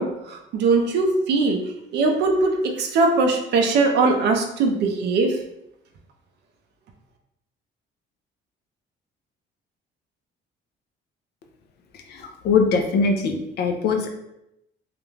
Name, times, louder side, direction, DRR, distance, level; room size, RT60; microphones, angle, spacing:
voice 1, 0.0-1.6 1.9-5.4, right 3 dB, 55° right, 3 dB, 0.4 m, -21 dB
voice 2, 12.1-14.1, left 4 dB, 55° left, 4 dB, 0.4 m, -22 dB
2.4 x 2.1 x 3.1 m, 0.83 s
cardioid pair, 175°, 20 cm